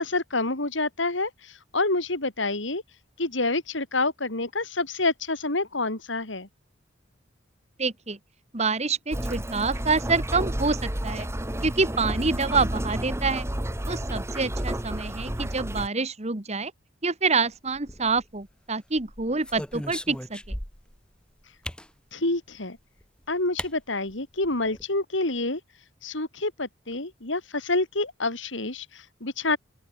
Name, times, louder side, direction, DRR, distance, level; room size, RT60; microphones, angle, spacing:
voice 1, 0.0-2.8 3.2-6.5 22.1-22.8 23.3-25.6 26.0-29.6, left 2 dB, 70° left, 3.6 m, -28 dB
voice 2, 7.8-8.2 8.5-11.3 11.6-13.4 13.9-16.7 17.0-20.6, right 4 dB, 35° right, 1.6 m, -27 dB
sound 1, 9.1-15.9, right 1 dB, 15° right, 1.4 m, -31 dB
sound 2, 17.7-18.4 19.0-21.0 21.6-21.9 23.0-23.1 23.6-23.7 24.1-24.2 24.4-24.8, left 1 dB, 5° left, 1.3 m, -37 dB
open air
head